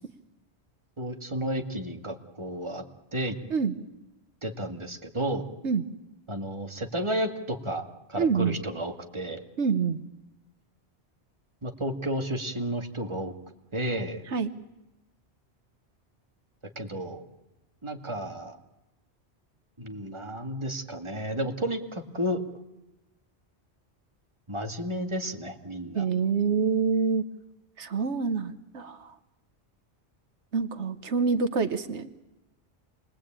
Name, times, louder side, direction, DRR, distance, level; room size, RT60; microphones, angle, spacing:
voice 1, 1.0-2.8 3.1-3.4 4.4-5.4 6.3-9.4 11.6-13.3 13.7-14.2 16.8-17.2 17.8-18.6 19.8-22.4 24.5-26.0, right 1 dB, 25° right, 4 dB, 2.2 m, -32 dB
voice 2, 8.2-8.6 9.6-10.0 14.3-14.5 25.9-27.2 27.8-29.1 30.5-32.3, right 5 dB, 85° right, 11 dB, 1.5 m, -26 dB
28.0 x 21.5 x 8.9 m, 0.99 s
omnidirectional pair, 1.1 m